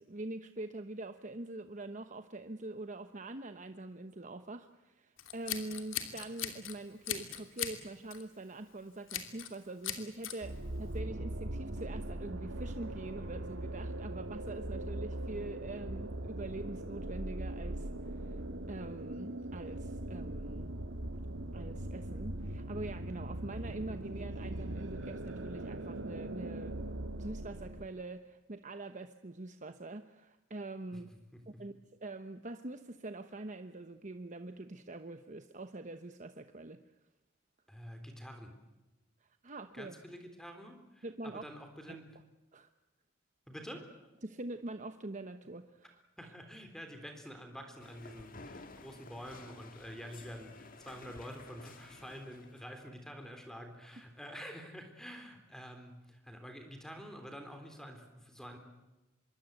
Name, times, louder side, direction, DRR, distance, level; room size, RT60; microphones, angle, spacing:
voice 1, 0.0-18.4 18.7-20.7 21.5-26.8 27.2-31.1 31.6-31.7 32.0-36.8 39.2-39.9 41.0-41.4 41.9-42.0 42.5-42.7 44.2-46.0, right 2 dB, 40° right, 8 dB, 1.0 m, -44 dB
Scissors, 5.2-6.7 7.0-7.8 8.1-8.3 9.1-9.5 9.8-10.3, left 10 dB, 80° left, 2.9 m, -38 dB
sound 1, 10.4-27.9, right 1 dB, 75° right, 1.7 m, -40 dB
voice 2, 31.3-31.7 37.7-38.6 39.7-42.0 43.5-43.9 46.2-58.6, equal, 5° left, 5 dB, 3.5 m, -48 dB
sound 2, 47.8-52.7, left 3 dB, 45° left, 1.8 m, -53 dB
25.5 x 23.0 x 8.1 m, 1.0 s
head